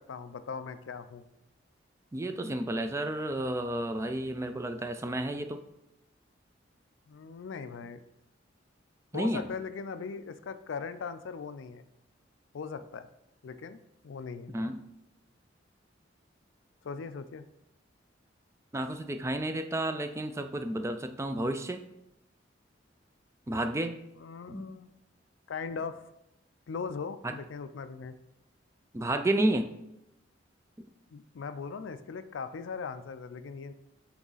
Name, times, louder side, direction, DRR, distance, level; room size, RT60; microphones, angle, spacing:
voice 1, 0.1-1.2 7.1-8.0 9.1-11.8 12.5-13.1 13.4-13.8 14.0-14.7 16.8-17.5 24.2-24.9 25.5-26.0 26.7-28.1 31.1-33.7, left 5 dB, 80° left, 11 dB, 0.4 m, -39 dB
voice 2, 2.1-5.6 9.1-9.5 14.5-14.8 18.7-21.8 23.5-24.0 24.5-24.6 27.2-27.3 28.9-29.7 30.8-30.9, right 1 dB, 15° right, 8 dB, 0.3 m, -31 dB
6.1 x 4.0 x 3.9 m, 0.86 s
head